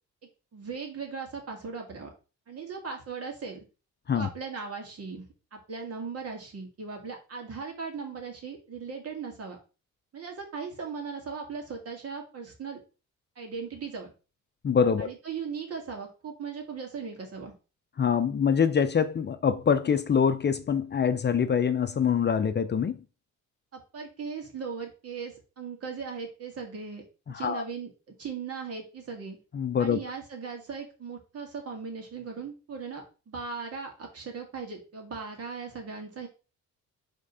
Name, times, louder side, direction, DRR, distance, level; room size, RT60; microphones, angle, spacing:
voice 1, 0.5-2.1 2.5-3.6 4.1-5.3 5.5-9.6 10.1-12.8 13.4-14.1 15.0-17.5 23.7-27.0 27.3-27.9 28.2-29.4 29.8-36.3, right 5 dB, 50° right, 2.3 m, -38 dB
voice 2, 14.6-15.1 18.0-23.0 27.3-27.6 29.5-30.0, left 7 dB, 35° left, 0.6 m, -25 dB
5.1 x 3.7 x 5.5 m
cardioid pair, 90°, 30 cm